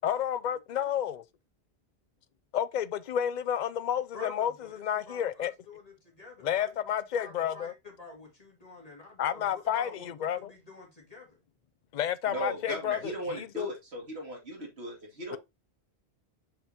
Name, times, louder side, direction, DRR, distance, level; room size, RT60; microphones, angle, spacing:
voice 1, 0.0-1.2 2.5-4.5 4.8-5.5 6.4-7.7 9.2-10.5 11.9-13.7 15.3-15.4, left 9 dB, 55° left, 0.5 m, -30 dB
voice 2, 4.1-11.4, left 3 dB, 35° left, 2.4 m, -48 dB
voice 3, 12.3-15.4, right 1 dB, 75° right, 2.8 m, -37 dB
6.8 x 5.5 x 2.9 m
omnidirectional pair, 1.1 m